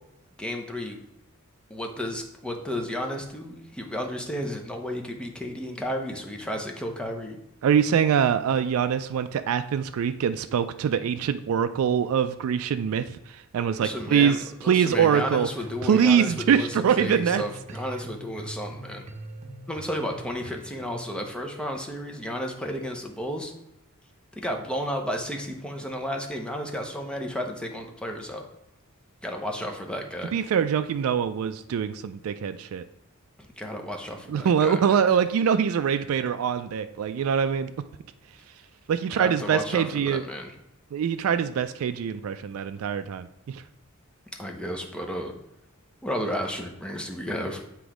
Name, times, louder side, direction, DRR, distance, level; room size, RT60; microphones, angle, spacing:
voice 1, 0.4-1.0 1.7-7.4 13.8-19.1 19.7-23.5 24.4-28.4 29.2-30.3 33.6-35.0 39.1-40.5 44.4-45.3 46.0-47.6, equal, 5° left, 2 dB, 0.8 m, -33 dB
voice 2, 7.6-14.4 14.6-15.5 15.8-17.4 30.3-32.8 34.3-37.7 38.9-40.2 40.9-43.6, right 7 dB, 70° right, 10 dB, 0.3 m, -24 dB
sound 1, 14.7-21.1, right 1 dB, 35° right, 0.7 m, -42 dB
7.9 x 3.0 x 4.9 m, 0.87 s
head